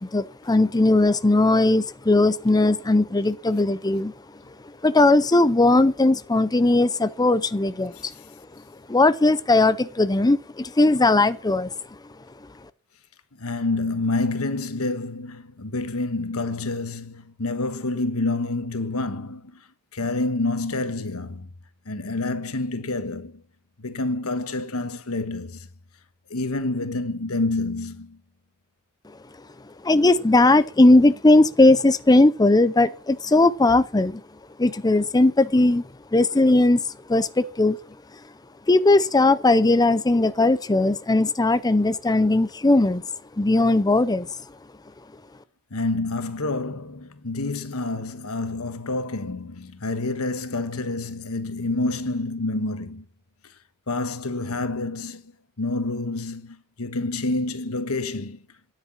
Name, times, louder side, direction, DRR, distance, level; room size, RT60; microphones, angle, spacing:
voice 1, 0.0-4.1 4.8-8.1 8.9-11.7 29.8-34.2 34.6-35.8 36.1-36.8 37.1-37.8 38.7-43.0 43.4-44.3, left 2 dB, 20° left, 0.6 m, -18 dB
voice 2, 13.4-19.6 19.9-21.5 21.9-23.4 23.8-25.7 26.3-28.2 45.7-53.0 53.9-55.3 55.6-58.4, left 2 dB, 80° left, 1.4 m, -28 dB
13.5 x 10.0 x 7.3 m
head